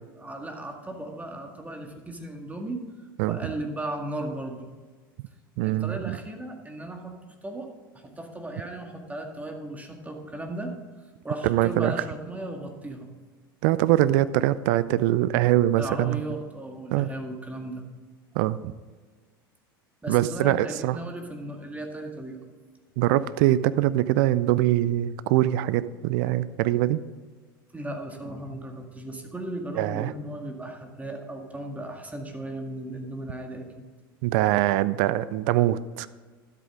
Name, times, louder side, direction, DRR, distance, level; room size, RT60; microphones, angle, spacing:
voice 1, 0.0-2.8 3.3-4.7 5.6-7.7 8.0-10.7 11.2-13.1 15.8-17.9 20.0-22.4 27.7-33.9, right 1 dB, 15° right, 3 dB, 1.9 m, -36 dB
voice 2, 5.6-6.2 11.4-11.9 13.6-16.2 16.9-17.1 18.4-18.7 20.1-21.0 23.0-27.0 29.8-30.1 34.2-36.1, right 14 dB, 60° right, 16 dB, 0.4 m, -23 dB
12.5 x 8.3 x 3.7 m, 1.4 s
hypercardioid pair, 75°, 12 cm